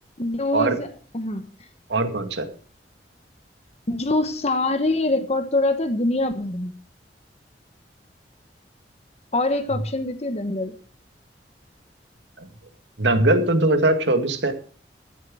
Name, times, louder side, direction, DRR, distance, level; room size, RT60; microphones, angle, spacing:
voice 1, 0.2-0.9 1.1-1.4 3.9-6.7 9.3-10.8, left 2 dB, 40° left, 7 dB, 1.2 m, -24 dB
voice 2, 1.9-2.5 12.4-12.5 13.0-14.5, right 2 dB, 90° right, 7 dB, 2.2 m, -20 dB
14.0 x 7.6 x 6.3 m, 0.41 s
head